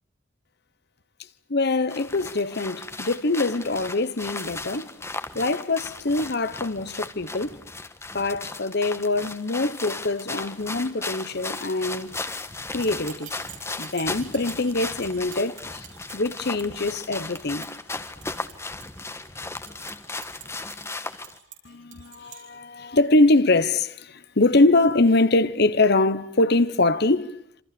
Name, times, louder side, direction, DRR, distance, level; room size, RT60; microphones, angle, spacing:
voice 1, 1.5-4.9 5.3-7.6 8.1-12.1 12.7-13.3 13.8-15.6 16.1-17.7 21.8-27.4, left 2 dB, 55° left, 1.1 m, -23 dB
sound 1, 1.9-21.4, left 3 dB, 15° left, 1.4 m, -36 dB
sound 2, 12.6-22.4, right 10 dB, 80° right, 6.9 m, -47 dB
27.0 x 27.0 x 6.9 m
head